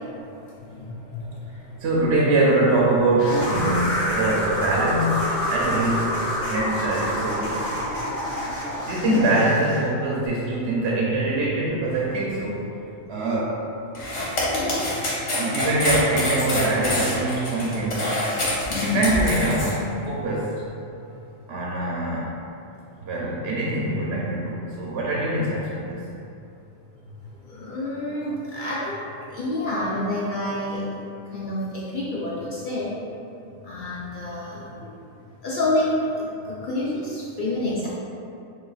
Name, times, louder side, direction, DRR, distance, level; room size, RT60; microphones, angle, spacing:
voice 1, 1.8-6.2 6.5-8.1 8.8-12.7 13.1-13.6 15.3-18.1 18.7-20.6 21.5-22.4 23.0-26.0, right 2 dB, 70° right, -4 dB, 0.8 m, -24 dB
sound 1, 3.2-9.9, equal, 15° left, 0.8 m, -27 dB
sound 2, 13.9-19.7, left 1 dB, 90° left, 1.3 m, -26 dB
voice 2, 18.7-19.0 27.5-29.0 29.3-30.8 31.3-32.9 33.7-34.6 35.4-35.9 36.7-36.9 37.4-37.9, left 2 dB, 55° left, -6 dB, 0.6 m, -27 dB
6.1 x 2.3 x 2.3 m, 2.6 s
omnidirectional pair, 1.2 m